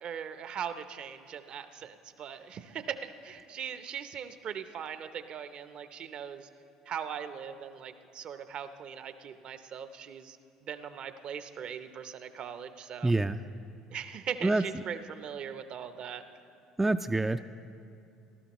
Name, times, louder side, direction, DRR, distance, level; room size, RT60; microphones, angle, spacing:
voice 1, 0.0-6.5 6.9-10.4 10.6-13.1 13.9-16.2, right 8 dB, 55° right, 10 dB, 0.7 m, -40 dB
voice 2, 13.0-13.4 14.4-14.6 16.8-17.4, right 2 dB, 10° right, 8 dB, 0.3 m, -26 dB
17.5 x 12.5 x 3.0 m, 2.6 s
hypercardioid pair, 70°, 2 cm